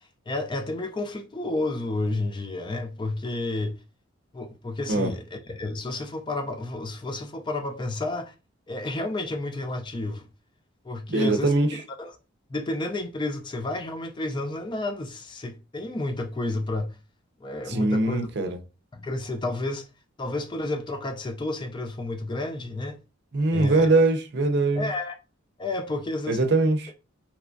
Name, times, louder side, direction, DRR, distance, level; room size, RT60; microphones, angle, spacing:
voice 1, 0.3-3.8 4.3-8.3 8.7-10.3 10.8-12.2 12.5-17.0 17.4-18.3 18.9-19.8 20.2-23.0 23.5-23.9 24.8-25.2 25.6-26.4, left 2 dB, 20° left, 0.3 m, -31 dB
voice 2, 11.1-11.7 17.7-18.6 23.3-24.9 26.3-26.9, right 2 dB, 50° right, 0.5 m, -22 dB
3.4 x 3.0 x 2.5 m
head